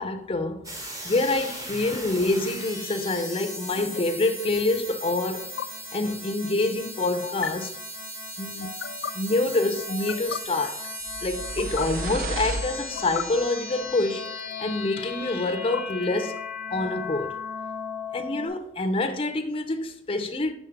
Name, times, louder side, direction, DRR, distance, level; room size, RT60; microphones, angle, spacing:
voice 1, 0.0-5.5 5.9-7.7 8.4-8.7 9.1-10.9 11.2-16.4 16.7-17.4 18.1-20.5, left 2 dB, 30° left, 0.5 m, -27 dB
sound 1, 0.6-18.5, left 2 dB, 20° right, 0.9 m, -37 dB
sound 2, 1.7-2.0 3.8-4.0 5.4-5.7 7.2-7.5 8.6-9.1 9.9-10.4 11.4-11.8 12.8-13.2 14.2-14.8 15.5-16.4, left 8 dB, 90° left, 0.3 m, -36 dB
sound 3, 11.1-13.5, right 2 dB, 50° right, 0.4 m, -34 dB
5.1 x 3.7 x 5.8 m
head